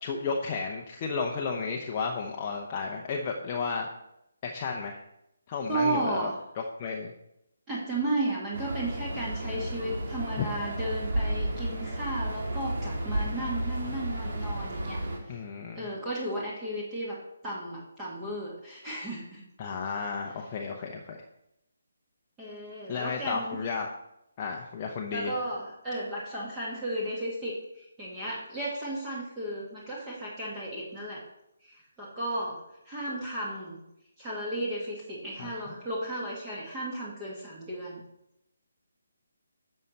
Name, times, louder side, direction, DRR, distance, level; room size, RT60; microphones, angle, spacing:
voice 1, 0.0-3.9 4.4-5.0 5.5-6.3 6.8-7.1 10.4-10.5 15.3-15.8 19.6-21.2 22.9-23.9 24.4-25.3 35.4-35.5, left 5 dB, 25° left, 1 dB, 0.9 m, -33 dB
voice 2, 5.7-6.4 7.7-15.0 15.3-15.4 15.8-17.2 17.4-19.4 22.4-23.6 25.1-31.2 31.6-33.8 34.2-38.0, right 1 dB, 15° right, -6 dB, 2.0 m, -34 dB
sound 1, 8.5-15.2, right 1 dB, 50° right, 2.2 m, -32 dB
11.0 x 6.6 x 4.2 m, 0.83 s
figure-of-eight pair, 145°, 0 cm